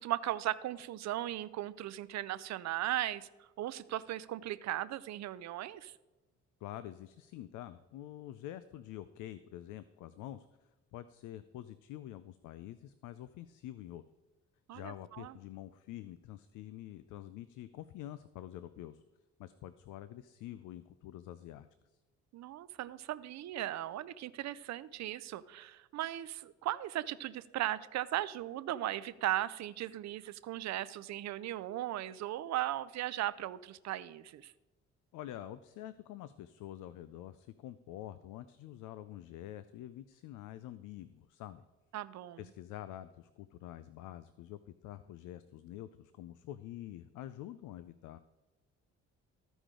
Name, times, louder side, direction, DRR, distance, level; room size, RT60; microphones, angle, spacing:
voice 1, 0.0-5.9 14.7-15.4 22.3-34.5 41.9-42.4, right 13 dB, 65° right, 16 dB, 0.5 m, -37 dB
voice 2, 6.6-10.5 10.9-14.0 14.7-19.0 19.4-21.7 35.1-41.6 42.4-48.2, left 13 dB, 85° left, 14 dB, 0.4 m, -47 dB
14.5 x 5.0 x 3.7 m, 1.1 s
cardioid pair, 90°, 30 cm